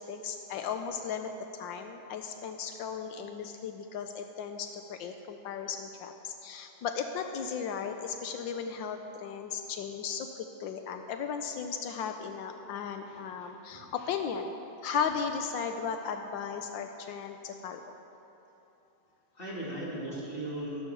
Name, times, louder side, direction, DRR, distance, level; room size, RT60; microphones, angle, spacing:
voice 1, 0.0-14.5 14.8-17.8, left 6 dB, 85° left, 6 dB, 1.4 m, -36 dB
voice 2, 13.1-14.1 19.3-20.8, right 1 dB, 30° left, -6 dB, 3.0 m, -39 dB
13.0 x 11.5 x 6.9 m, 2.9 s
omnidirectional pair, 2.0 m